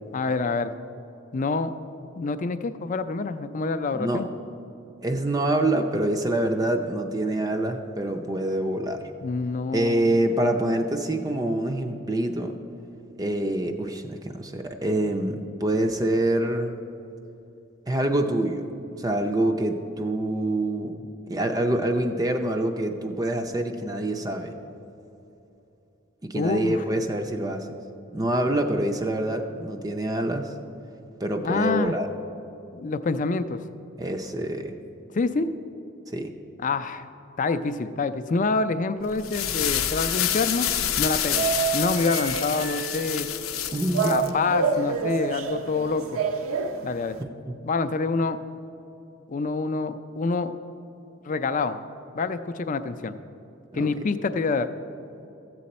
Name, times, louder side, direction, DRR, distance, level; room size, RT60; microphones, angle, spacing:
voice 1, 0.1-0.7 1.3-1.7 2.2-4.3 9.2-10.1 26.4-26.8 31.4-32.0 32.7-33.6 35.1-35.5 36.6-37.1 37.4-40.7 41.0-41.5 41.7-43.3 44.0-46.2 46.8-47.2 47.6-48.4 49.3-50.5 51.3-51.8 52.1-53.1 53.7-54.7, left 3 dB, 40° left, 11 dB, 0.4 m, -26 dB
voice 2, 3.9-4.3 5.0-9.1 9.7-12.5 13.2-16.7 17.9-18.7 19.0-24.5 26.2-27.7 28.1-30.5 31.2-32.1 34.0-34.8 36.1-36.3 43.7-44.3 47.2-47.6 53.7-54.0, right 1 dB, 20° right, 4 dB, 0.4 m, -26 dB
sound 1, 39.1-44.3, left 10 dB, 85° left, 0.6 m, -28 dB
sound 2, 40.2-47.2, right 5 dB, 75° right, 0.6 m, -29 dB
14.0 x 7.7 x 4.2 m, 2.9 s
head